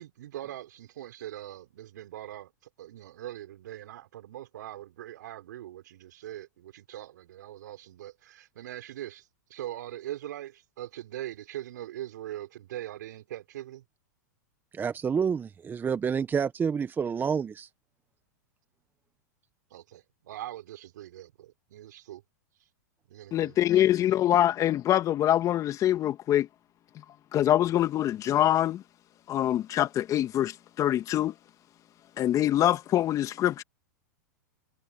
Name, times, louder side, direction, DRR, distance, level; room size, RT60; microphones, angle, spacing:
voice 1, 0.0-2.5 2.8-13.8 19.7-22.2 23.1-24.3, right 13 dB, 70° right, 5.5 m, -42 dB
voice 2, 14.7-17.7, right 6 dB, 20° right, 1.4 m, -28 dB
voice 3, 23.3-26.5 27.3-28.8 29.3-31.3 32.2-33.6, left 12 dB, 35° left, 2.0 m, -24 dB
hypercardioid pair, 110°, 10 cm